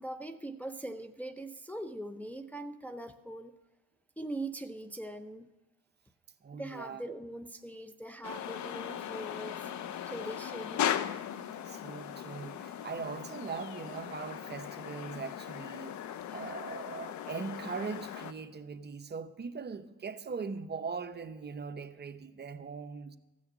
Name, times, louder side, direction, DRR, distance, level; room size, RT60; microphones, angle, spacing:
voice 1, 0.0-3.5 4.2-5.5 6.5-9.7 10.1-10.9, right 1 dB, 5° left, 0.6 m, -41 dB
voice 2, 6.4-7.0 11.6-16.0 16.3-23.2, right 5 dB, 35° right, 0.8 m, -40 dB
sound 1, 8.2-18.3, left 10 dB, 70° left, 0.7 m, -38 dB
15.0 x 6.4 x 7.2 m
cardioid pair, 90°, 30 cm